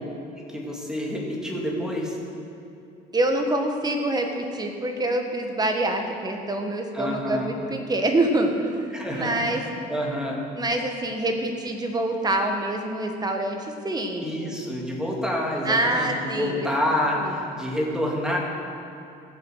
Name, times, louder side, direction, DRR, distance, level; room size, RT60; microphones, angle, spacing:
voice 1, 0.4-2.2 6.9-7.5 8.9-10.4 14.2-18.4, left 1 dB, 5° right, -2 dB, 2.4 m, -28 dB
voice 2, 3.1-8.7 9.1-9.6 10.5-14.3 15.6-16.7 17.2-17.3, right 1 dB, 25° right, 4 dB, 1.5 m, -26 dB
15.0 x 7.1 x 6.4 m, 2.8 s
cardioid pair, 110°, 17 cm